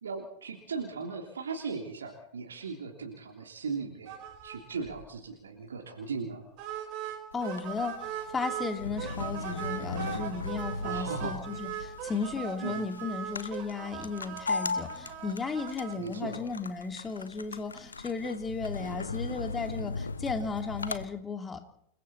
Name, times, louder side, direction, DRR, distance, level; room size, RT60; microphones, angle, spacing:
voice 1, 0.0-4.1 4.4-6.4 10.8-11.4 12.6-12.8 16.0-16.4, right 4 dB, 70° right, 1 dB, 3.3 m, -37 dB
sound 1, 4.1-4.6 4.9-5.0 5.3-5.4 6.6-8.7 9.0-16.0, right 10 dB, 40° right, 4.6 m, -39 dB
sound 2, 7.3-21.0, left 3 dB, 75° left, 1.1 m, -38 dB
voice 2, 7.3-21.6, left 4 dB, 15° left, 6 dB, 2.6 m, -35 dB
29.0 x 20.5 x 4.4 m, 0.70 s
figure-of-eight pair, 90°, 0 cm